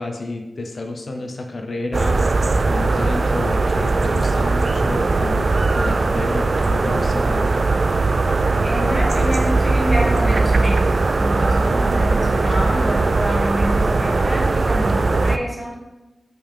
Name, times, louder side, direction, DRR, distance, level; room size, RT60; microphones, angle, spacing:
voice 1, 0.0-2.3 2.7-7.6, left 2 dB, 65° left, 4 dB, 0.7 m, -30 dB
sound 1, 1.9-15.4, right 3 dB, 55° right, 0.3 m, -19 dB
voice 2, 8.6-15.7, equal, ahead, -3 dB, 1.6 m, -27 dB
5.2 x 3.4 x 5.5 m, 1.1 s
cardioid pair, 50°, 0 cm